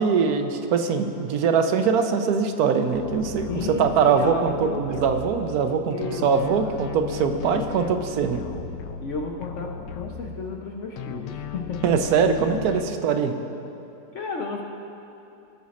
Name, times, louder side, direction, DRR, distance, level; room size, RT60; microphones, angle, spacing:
voice 1, 0.0-8.4 11.8-13.3, right 6 dB, 65° right, 6 dB, 1.1 m, -22 dB
sound 1, 2.9-5.7 6.0-10.7 11.0-12.8, left 7 dB, 80° left, 1.2 m, -36 dB
voice 2, 3.5-4.9 5.9-6.8 7.2-7.8 9.0-11.9 14.1-14.6, left 4 dB, 55° left, 1 dB, 0.9 m, -33 dB
17.5 x 6.2 x 4.1 m, 3.0 s
omnidirectional pair, 1.9 m